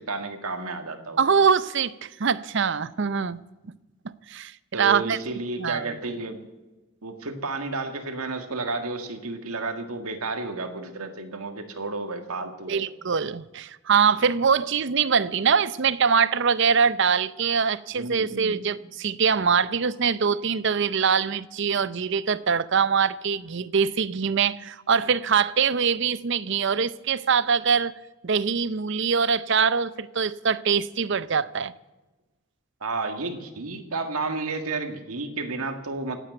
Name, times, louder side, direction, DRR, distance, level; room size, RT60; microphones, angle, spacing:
voice 1, 0.0-1.3 4.7-6.4 7.0-12.8 18.0-18.6 32.8-36.2, right 3 dB, 80° right, 1.8 m, -32 dB
voice 2, 1.2-3.4 4.0-5.2 5.6-5.9 12.7-27.9 28.2-31.7, right 6 dB, 55° right, 0.5 m, -23 dB
16.5 x 9.1 x 8.0 m
head